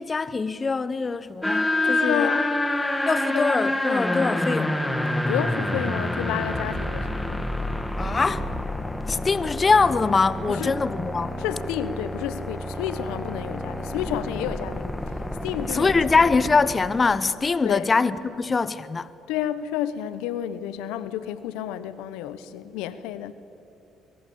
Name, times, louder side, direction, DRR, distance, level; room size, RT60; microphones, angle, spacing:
voice 1, 0.0-2.3 3.1-4.8 8.0-8.5 9.1-11.4 15.7-19.1, left 4 dB, 35° left, 1.0 m, -23 dB
Monotron noodling, 1.4-17.3, left 1 dB, 10° left, 2.3 m, -28 dB
voice 2, 1.8-2.5 3.3-3.4 4.9-7.4 10.5-10.7 11.4-15.9 17.6-17.8 19.3-23.3, left 10 dB, 80° left, 0.9 m, -31 dB
24.5 x 22.5 x 8.6 m
hypercardioid pair, 55°, 0 cm